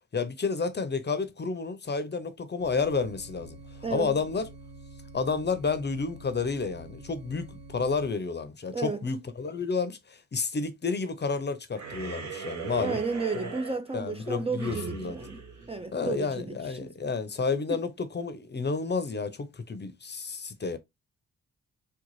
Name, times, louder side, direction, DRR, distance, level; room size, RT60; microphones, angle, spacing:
voice 1, 0.1-3.6 3.9-4.5 5.1-13.0 13.4-13.5 13.9-15.1 15.9-20.8, left 4 dB, 35° left, 0.6 m, -30 dB
sound 1, 2.6-8.1, right 2 dB, 85° right, 1.1 m, -47 dB
voice 2, 3.8-4.2 8.7-9.1 12.8-15.4 15.7-16.9 17.7-17.8, right 4 dB, 20° right, 0.4 m, -33 dB
sound 2, 11.7-16.5, right 6 dB, 60° right, 1.0 m, -40 dB
3.8 x 2.3 x 3.0 m
cardioid pair, 80°, 33 cm